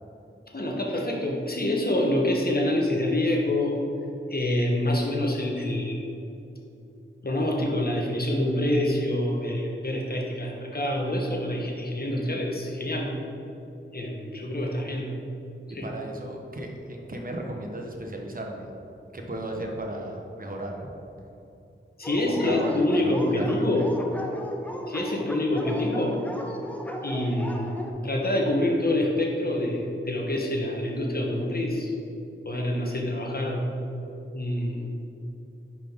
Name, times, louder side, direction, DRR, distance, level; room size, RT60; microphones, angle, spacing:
voice 1, 0.5-3.8 4.3-6.1 7.2-13.1 13.9-15.1 15.7-15.9 22.0-23.9 24.9-26.2 27.0-27.7 28.0-31.9 32.4-33.6 34.3-34.9, left 1 dB, 45° left, -1 dB, 1.1 m, -26 dB
voice 2, 15.8-18.7 19.1-20.9 22.3-24.0, right 1 dB, 45° right, 1 dB, 0.9 m, -35 dB
Dog, 22.0-27.9, equal, 5° left, 0.7 m, -36 dB
5.5 x 5.1 x 3.6 m, 2.8 s
wide cardioid pair, 40°, 21 cm